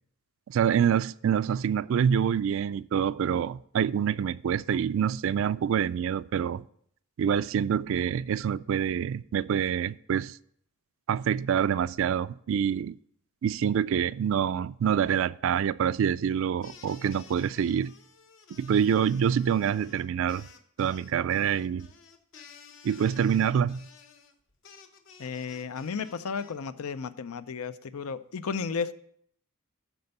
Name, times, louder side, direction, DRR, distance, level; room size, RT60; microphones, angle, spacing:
voice 1, 0.5-6.6 7.2-10.4 11.1-13.0 13.4-17.9 18.6-20.4 20.8-21.9 22.8-23.8, right 8 dB, 60° right, 0.3 m, -26 dB
sound 1, 16.6-26.5, left 6 dB, 60° left, 0.9 m, -53 dB
voice 2, 25.2-28.9, left 5 dB, 90° left, 0.5 m, -33 dB
12.5 x 4.4 x 5.3 m
head